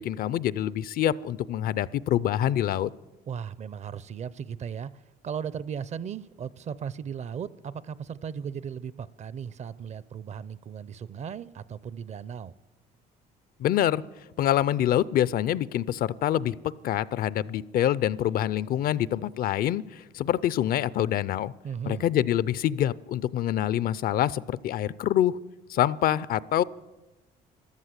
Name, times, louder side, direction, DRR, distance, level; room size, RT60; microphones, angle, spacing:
voice 1, 0.0-2.9 13.6-14.0 14.4-16.6 16.8-21.5 21.9-25.4 25.7-26.6, left 11 dB, 60° left, 20 dB, 0.5 m, -26 dB
voice 2, 3.3-4.9 5.2-12.5 21.6-22.1, right 7 dB, 40° right, 19 dB, 0.5 m, -36 dB
14.0 x 12.5 x 8.1 m, 1.1 s
cardioid pair, 110°, 17 cm